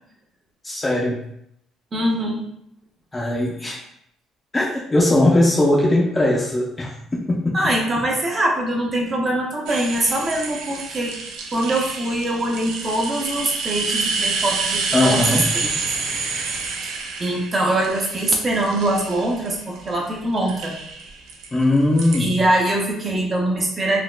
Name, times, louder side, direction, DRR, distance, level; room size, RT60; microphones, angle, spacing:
voice 1, 0.6-1.2 3.1-3.8 4.5-4.7 4.9-7.6 14.9-15.4 21.5-22.3, left 1 dB, 20° left, -4 dB, 0.5 m, -19 dB
voice 2, 1.9-2.4 7.5-11.2 11.5-16.6 16.8-16.9 17.2-20.7 22.2-24.0, right 1 dB, 30° right, -1 dB, 0.6 m, -23 dB
sound 1, 9.7-19.9 20.4-22.2, right 4 dB, 85° right, 0.5 m, -28 dB
4.0 x 2.3 x 2.2 m, 0.75 s
cardioid pair, 120°, 0 cm